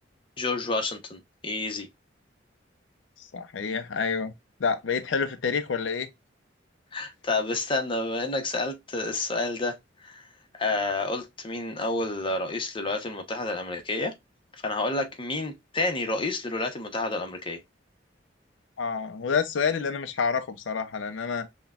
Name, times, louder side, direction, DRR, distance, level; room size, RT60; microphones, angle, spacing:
voice 1, 0.4-1.9 6.9-9.8 10.0-10.2 10.5-14.1 14.6-17.6, left 2 dB, 30° left, 0.8 m, -29 dB
voice 2, 3.2-4.3 4.6-6.1 18.8-21.5, left 5 dB, 85° left, 0.5 m, -28 dB
5.9 x 2.2 x 2.3 m
head